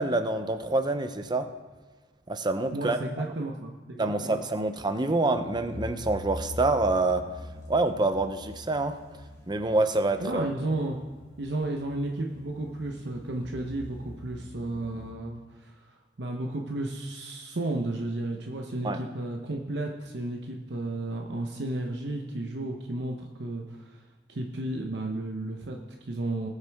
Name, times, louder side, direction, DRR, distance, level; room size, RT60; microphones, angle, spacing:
voice 1, 0.0-1.5 2.3-3.0 4.0-7.2 7.7-9.0 9.5-10.5 18.8-19.0, right 2 dB, 25° right, 9 dB, 0.7 m, -26 dB
voice 2, 2.7-4.4 10.2-11.0 11.4-26.5, right 2 dB, 65° right, 1 dB, 0.9 m, -33 dB
sound 1, 5.3-15.1, left 1 dB, 20° left, 2.5 m, -44 dB
19.5 x 6.6 x 3.5 m, 1.4 s
head